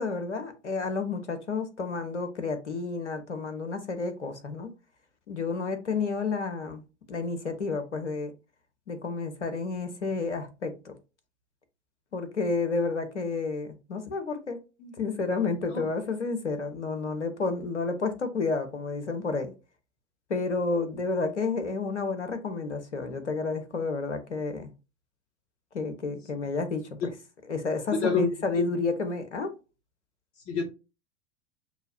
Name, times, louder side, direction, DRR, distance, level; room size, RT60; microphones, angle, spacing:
voice 1, 0.0-4.7 5.3-6.8 7.1-8.3 8.9-10.9 12.1-19.5 20.3-24.7 25.7-26.9 27.5-29.6, left 4 dB, 75° left, 1.1 m, -30 dB
voice 2, 15.7-15.9 27.0-27.1 28.0-28.3 28.5-28.6 30.5-30.6, left 4 dB, 40° left, 1.9 m, -27 dB
6.1 x 2.8 x 2.7 m
figure-of-eight pair, 90°, 35 cm